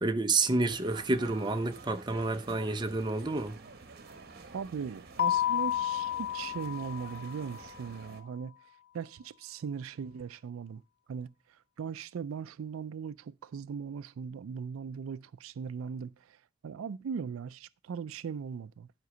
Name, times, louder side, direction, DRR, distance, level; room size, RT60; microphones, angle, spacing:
voice 1, 0.0-3.6, right 3 dB, 20° right, 0.7 m, -29 dB
sound 1, 0.7-8.2, right 3 dB, 50° right, 1.2 m, -50 dB
voice 2, 4.5-8.6 8.9-10.8 11.1-18.9, right 6 dB, 85° right, 0.4 m, -39 dB
Keyboard (musical), 5.2-7.7, left 11 dB, 50° left, 0.4 m, -31 dB
11.0 x 5.2 x 4.9 m
head